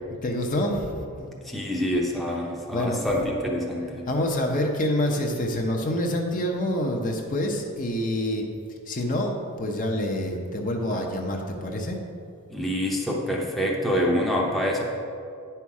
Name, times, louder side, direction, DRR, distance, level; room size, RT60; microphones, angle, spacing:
voice 1, 0.2-1.4 2.7-3.0 4.1-8.4 8.9-12.0, left 1 dB, 35° left, 2 dB, 0.8 m, -27 dB
voice 2, 1.4-4.0 12.5-14.8, equal, ahead, -3 dB, 0.8 m, -26 dB
9.4 x 5.8 x 4.8 m, 2.4 s
head